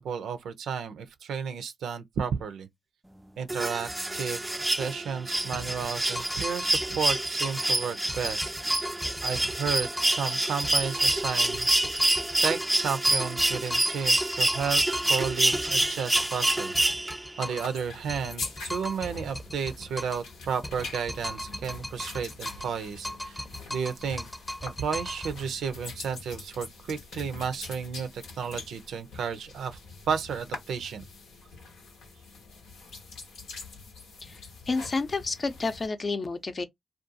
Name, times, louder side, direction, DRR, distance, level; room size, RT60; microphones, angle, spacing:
voice 1, 0.0-2.7 3.4-8.9 9.2-11.7 12.4-14.8 15.1-16.7 17.4-23.4 23.7-24.3 24.6-29.8 30.1-31.0, right 6 dB, 80° right, 0.5 m, -32 dB
sound 1, 3.5-17.4 18.8-18.9, right 1 dB, 15° right, 0.3 m, -27 dB
sound 2, 5.5-7.7 8.1-10.3 10.6-12.8 13.0-17.7 18.1-20.3 20.6-22.8 23.0-25.4, left 1 dB, 20° left, 0.8 m, -38 dB
sound 3, 17.4-35.9, left 4 dB, 85° left, 0.8 m, -44 dB
voice 2, 34.7-36.6, left 3 dB, 50° left, 0.6 m, -30 dB
2.5 x 2.3 x 2.6 m
supercardioid pair, 45°, 0 cm